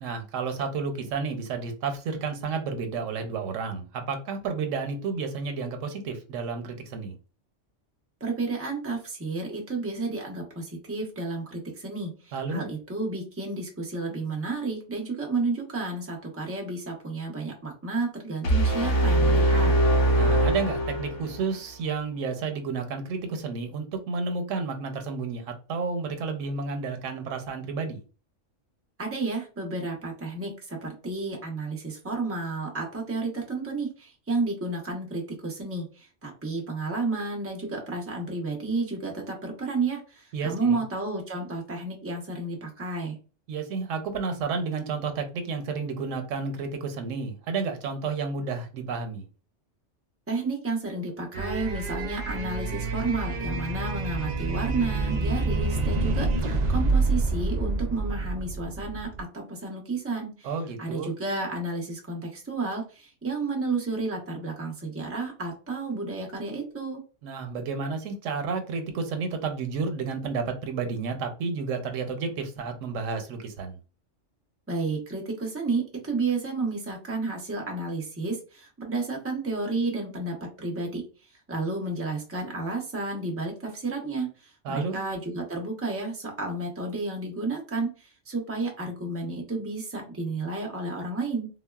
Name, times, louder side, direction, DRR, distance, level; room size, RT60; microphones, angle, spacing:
voice 1, 0.0-7.1 12.3-12.7 20.2-28.0 40.3-40.8 43.5-49.2 60.4-61.1 67.2-73.8 84.6-85.0, right 4 dB, 90° right, 6 dB, 1.0 m, -31 dB
voice 2, 8.2-19.7 29.0-43.2 50.3-60.5 60.8-67.0 74.7-81.0 81.5-91.5, right 3 dB, 15° right, 1 dB, 0.7 m, -31 dB
sound 1, 18.4-21.5, right 1 dB, 75° left, 1.1 m, -22 dB
sound 2, 51.3-59.2, right 3 dB, 65° right, 0.4 m, -27 dB
3.7 x 2.1 x 2.3 m, 0.34 s
omnidirectional pair, 1.3 m